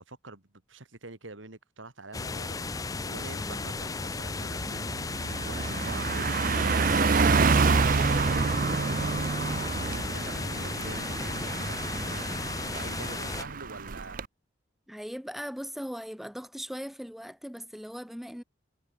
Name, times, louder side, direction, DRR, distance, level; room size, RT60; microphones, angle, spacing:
voice 1, 0.0-5.0 5.4-7.2 7.5-9.1 9.7-14.2, right 2 dB, 85° right, 2.9 m, -46 dB
sound 1, 2.1-13.4, left 4 dB, 20° left, 0.4 m, -35 dB
Car passing by, 2.7-2.9 3.3-14.3, right 4 dB, 45° right, 0.6 m, -28 dB
voice 2, 14.9-18.4, equal, ahead, 1.0 m, -39 dB
head